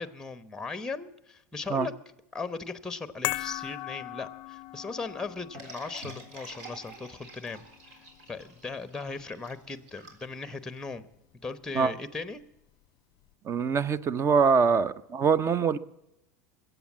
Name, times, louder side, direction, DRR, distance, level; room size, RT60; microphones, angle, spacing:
voice 1, 0.0-1.9 2.3-8.0 8.3-11.1 11.4-12.4, left 4 dB, 5° left, 12 dB, 0.9 m, -38 dB
sound 1, 3.2-9.7 9.9-10.1, left 20 dB, 55° left, 0.4 m, -39 dB
sound 2, 5.5-10.9, right 2 dB, 65° right, 3.7 m, -47 dB
voice 2, 13.4-15.8, right 5 dB, 30° right, 18 dB, 0.7 m, -24 dB
22.0 x 8.2 x 7.3 m, 0.88 s
hypercardioid pair, 95°, 9 cm